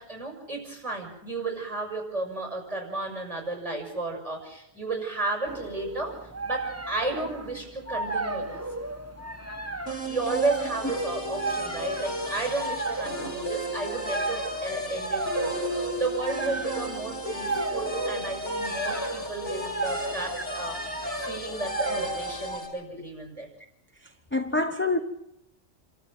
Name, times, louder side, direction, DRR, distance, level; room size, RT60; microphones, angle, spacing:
voice 1, 0.0-8.6 10.0-23.5, right 3 dB, 30° right, 2 dB, 6.5 m, -33 dB
sound 1, 5.5-22.6, right 2 dB, 10° right, 1.4 m, -34 dB
sound 2, 9.9-22.7, equal, 70° left, 6.6 m, -34 dB
voice 2, 24.0-25.0, left 2 dB, 10° left, 6 dB, 1.1 m, -27 dB
29.0 x 13.5 x 7.7 m, 0.81 s
omnidirectional pair, 1.2 m